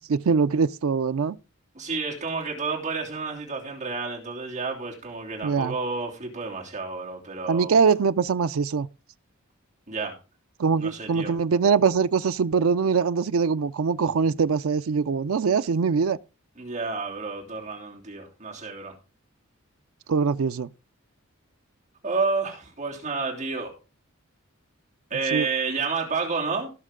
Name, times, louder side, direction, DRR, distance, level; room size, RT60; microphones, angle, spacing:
voice 1, 0.1-1.4 5.4-5.7 7.5-8.9 10.6-16.2 20.1-20.7 25.3-25.5, right 5 dB, 75° right, 0.4 m, -23 dB
voice 2, 1.7-7.7 9.9-10.2 10.8-11.3 16.6-18.9 22.0-23.7 25.1-26.7, right 4 dB, 35° right, 3.1 m, -30 dB
17.0 x 6.5 x 3.7 m
head